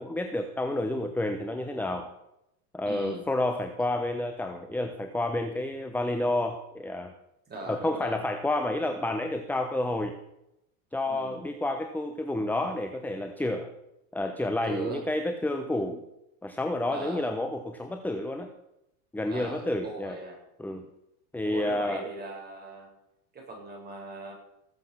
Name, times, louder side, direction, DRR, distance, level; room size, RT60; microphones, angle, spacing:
voice 1, 0.0-2.1 2.7-7.1 7.7-10.1 10.9-13.7 14.1-16.0 16.4-18.5 19.1-20.2 20.6-20.9 21.3-22.0, left 1 dB, 5° left, 7 dB, 1.0 m, -30 dB
voice 2, 2.9-3.2 7.5-8.2 11.1-11.4 14.6-15.0 15.7-15.8 16.9-17.3 19.3-20.4 21.4-22.9 23.3-24.3, right 3 dB, 20° right, -1 dB, 7.2 m, -39 dB
19.0 x 8.0 x 7.3 m, 0.86 s
supercardioid pair, 125°, 46 cm